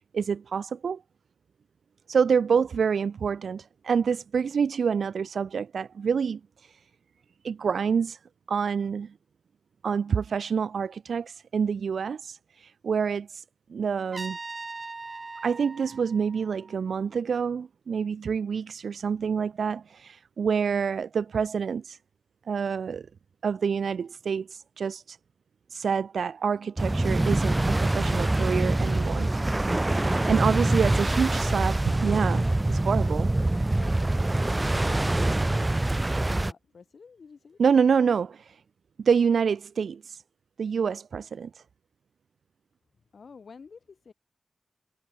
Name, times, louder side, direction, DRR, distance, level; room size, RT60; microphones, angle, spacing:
voice 1, 0.1-1.0 2.1-6.8 7.4-8.2 8.5-9.1 9.8-13.4 13.7-14.4 15.4-22.0 22.5-23.1 23.4-25.2 25.7-29.3 29.8-33.3 37.6-38.6 39.0-40.2 40.6-41.6, right 6 dB, 85° right, 0.4 m, -27 dB
Trumpet, 14.1-17.0, right 3 dB, 50° right, 1.2 m, -40 dB
sound 1, 26.8-36.5, right 2 dB, 25° right, 0.7 m, -25 dB
voice 2, 33.7-34.4 34.7-35.0 35.5-36.0 36.2-37.6 43.1-44.1, left 5 dB, 75° left, 2.2 m, -48 dB
cardioid pair, 55°, 0 cm